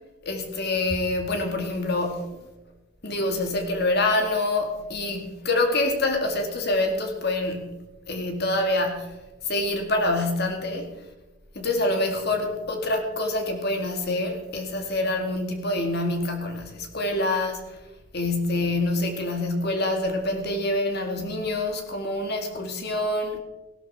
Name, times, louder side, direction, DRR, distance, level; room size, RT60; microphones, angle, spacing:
voice 1, 0.2-2.4 3.0-9.2 9.4-11.1 11.5-17.8 18.1-23.4, left 2 dB, 50° left, 2.1 m, -26 dB
16.5 x 12.5 x 4.2 m
head